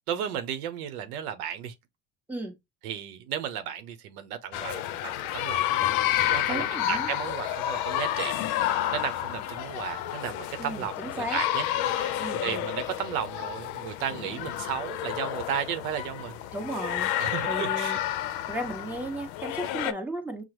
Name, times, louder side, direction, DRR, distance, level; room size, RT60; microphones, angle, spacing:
voice 1, 0.1-1.7 2.8-5.9 6.3-16.3 17.2-18.0, right 9 dB, 85° right, 0.7 m, -34 dB
sound 1, 4.5-19.9, left 12 dB, 75° left, 0.6 m, -30 dB
voice 2, 6.5-7.1 10.6-11.4 12.2-12.7 16.5-17.1 17.5-18.0 18.5-20.4, right 1 dB, 5° right, 1.0 m, -35 dB
6.1 x 2.0 x 2.9 m
supercardioid pair, 95°, 43 cm